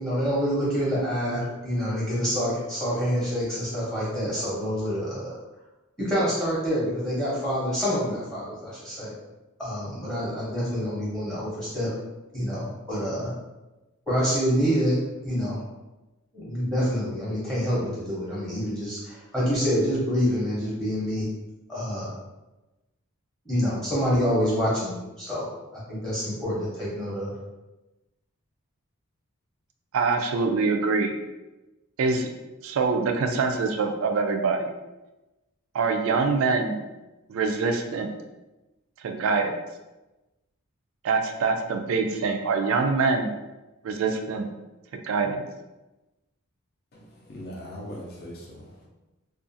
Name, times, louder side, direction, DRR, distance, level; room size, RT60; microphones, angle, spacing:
voice 1, 0.0-5.3 6.0-9.1 9.6-11.9 12.3-13.3 14.1-15.0 15.2-15.6 16.3-21.3 21.7-22.1 23.4-25.5 25.7-27.3, equal, 5° left, -8 dB, 0.7 m, -27 dB
voice 2, 29.9-31.1 32.0-32.3 32.6-34.7 35.7-36.8 37.3-38.1 39.0-39.5 41.0-43.3 43.8-44.5 45.0-45.4, right 4 dB, 70° right, 5 dB, 0.3 m, -24 dB
voice 3, 46.9-48.9, equal, 45° left, -2 dB, 0.5 m, -40 dB
2.4 x 2.3 x 2.6 m, 1.1 s
head